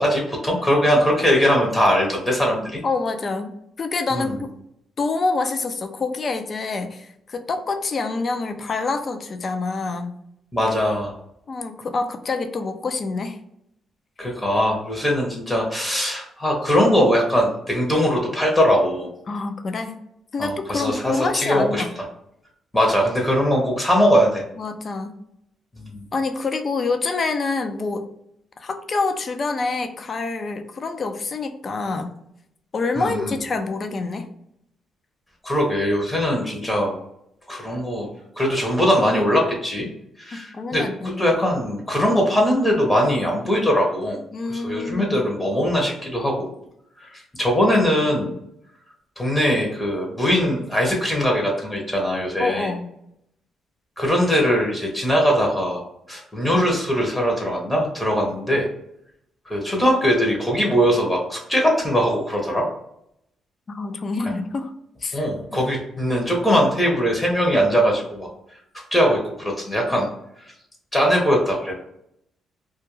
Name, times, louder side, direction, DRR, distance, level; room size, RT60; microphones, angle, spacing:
voice 1, 0.0-2.8 4.1-4.3 10.5-11.1 14.2-19.1 20.4-21.8 22.7-24.4 25.8-26.0 33.0-33.3 35.4-37.0 37.5-38.1 38.4-39.9 40.2-40.8 41.2-44.2 44.5-46.5 47.0-47.1 47.4-48.3 49.2-52.7 54.0-55.8 56.1-58.7 59.5-62.7 65.1-68.3 68.9-70.1 70.9-71.7, equal, 15° left, 0 dB, 0.7 m, -21 dB
voice 2, 2.8-4.5 5.0-10.2 11.5-13.4 19.3-20.0 20.3-21.9 24.6-25.2 26.1-28.1 28.6-32.1 32.7-34.3 40.3-41.3 44.3-45.2 52.4-52.9 63.7-64.7 65.0-65.3, left 3 dB, 40° left, 7 dB, 0.4 m, -26 dB
2.3 x 2.1 x 3.0 m, 0.76 s
cardioid pair, 90°, 0 cm